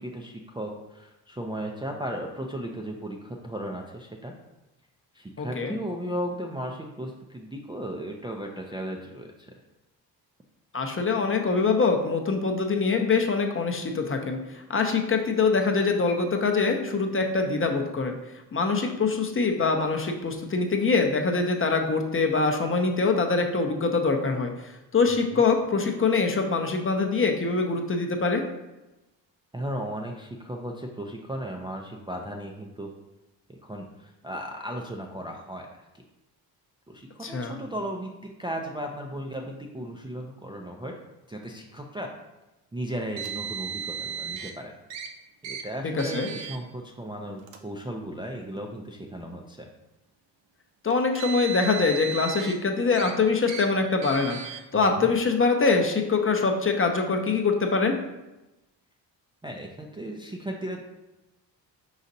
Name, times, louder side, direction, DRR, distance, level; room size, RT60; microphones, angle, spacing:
voice 1, 0.0-4.3 5.1-9.5 25.1-25.4 29.5-32.9 33.5-35.7 36.9-41.0 41.3-42.1 42.7-44.7 45.4-49.7 54.7-55.1 59.4-60.8, right 1 dB, 10° right, 0 dB, 0.4 m, -36 dB
voice 2, 5.4-5.8 10.7-18.1 18.5-28.5 37.2-37.6 46.0-46.3 50.8-54.4 54.7-58.0, left 4 dB, 30° left, 3 dB, 0.6 m, -24 dB
Car, 43.2-44.5 44.9-45.1 45.4-45.6 46.0-46.6 47.4-47.6 48.5-48.6 50.9-52.5 52.9-53.1 53.5-53.7 54.0-54.6, right 8 dB, 85° right, 0.6 m, -35 dB
4.9 x 4.0 x 2.7 m, 0.99 s
supercardioid pair, 65°, 44 cm